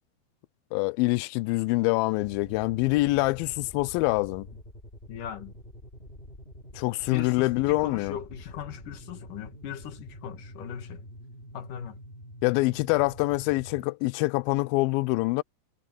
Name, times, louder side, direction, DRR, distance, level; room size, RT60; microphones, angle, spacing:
voice 1, 0.7-4.5 6.8-8.2 12.4-15.4, left 22 dB, 80° left, 2.2 m, -25 dB
sound 1, 2.2-13.9, equal, 15° left, 2.9 m, -46 dB
voice 2, 5.1-5.5 7.1-11.0 11.5-12.0, left 9 dB, 60° left, 2.9 m, -39 dB
omnidirectional pair, 4.7 m